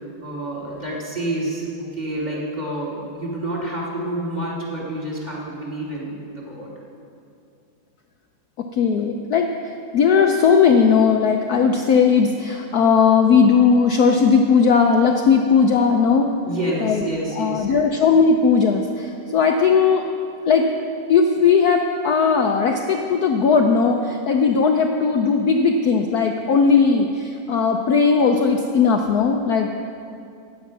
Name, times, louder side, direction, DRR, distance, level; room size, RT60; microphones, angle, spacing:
voice 1, 0.2-6.7 16.4-17.7, right 1 dB, 20° right, -4 dB, 3.1 m, -28 dB
voice 2, 8.8-9.5 9.9-16.3 16.8-17.0 17.3-20.0 20.5-20.7 21.1-29.7, left 5 dB, 65° left, 3 dB, 1.1 m, -17 dB
15.0 x 10.0 x 6.0 m, 2.5 s
omnidirectional pair, 2.1 m